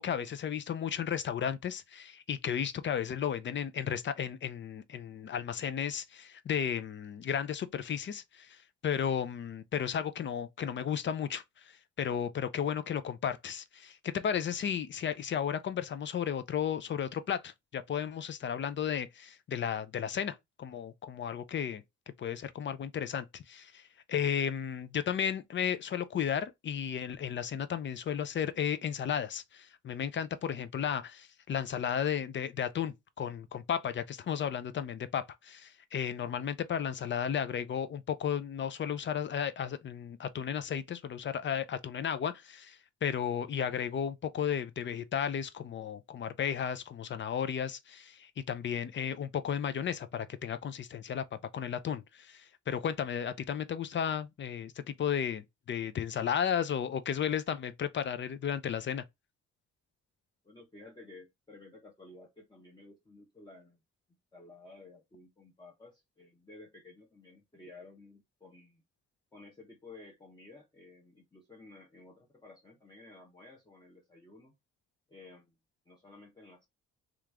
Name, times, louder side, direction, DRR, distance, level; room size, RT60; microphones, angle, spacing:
voice 1, 0.0-11.7 12.0-21.8 22.2-23.8 24.1-51.2 51.5-59.0, left 8 dB, 40° left, 0.4 m, -34 dB
voice 2, 60.4-63.8 64.3-68.8 69.3-74.5 75.1-75.6 75.9-76.7, left 2 dB, 15° left, 0.9 m, -54 dB
3.0 x 2.5 x 3.4 m
cardioid pair, 90°, 30 cm